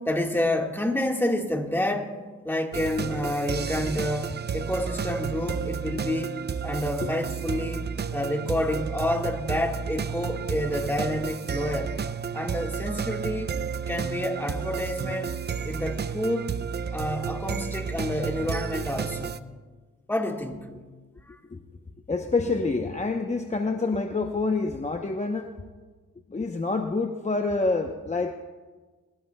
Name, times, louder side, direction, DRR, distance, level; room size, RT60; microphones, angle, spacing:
voice 1, 0.0-7.8 8.1-12.0 12.3-13.5 13.9-15.3 15.6-16.5 16.9-19.4 20.1-20.7 21.3-21.4, left 1 dB, 5° left, 2 dB, 1.6 m, -29 dB
sound 1, 2.7-19.4, right 6 dB, 35° right, 0.5 m, -32 dB
voice 2, 22.1-25.5 26.3-28.3, left 3 dB, 20° left, 4 dB, 0.8 m, -27 dB
21.0 x 17.0 x 2.3 m, 1.4 s
cardioid pair, 75°, 31 cm